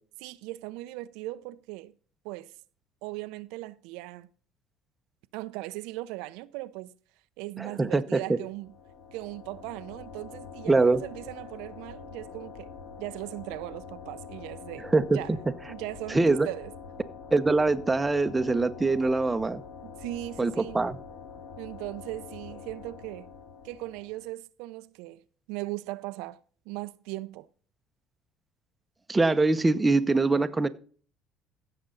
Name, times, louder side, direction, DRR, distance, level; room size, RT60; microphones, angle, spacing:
voice 1, 0.2-1.9 2.2-2.5 3.0-4.3 5.3-6.9 7.4-8.7 9.1-12.7 13.0-14.9 15.1-15.3 15.7-16.7 19.8-20.8 21.6-23.3 23.6-26.4 26.7-27.5, right 18 dB, 90° right, 0.6 m, -38 dB
voice 2, 7.6-8.4 10.7-11.0 14.9-15.4 16.1-16.5 17.3-19.6 20.4-21.0 29.1-30.7, right 3 dB, 15° right, 0.8 m, -23 dB
sound 1, 8.5-24.3, left 6 dB, 70° left, 1.6 m, -45 dB
15.5 x 6.8 x 3.9 m
cardioid pair, 115°, 0 cm